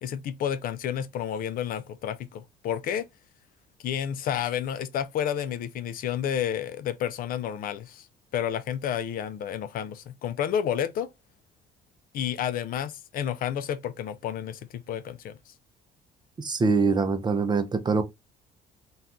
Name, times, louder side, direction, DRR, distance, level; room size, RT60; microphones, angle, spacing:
voice 1, 0.0-3.1 3.8-8.1 8.3-11.1 12.1-15.5, left 9 dB, 60° left, 0.4 m, -30 dB
voice 2, 16.4-18.0, right 4 dB, 25° right, 0.5 m, -24 dB
2.7 x 2.3 x 3.5 m
cardioid pair, 110°, 17 cm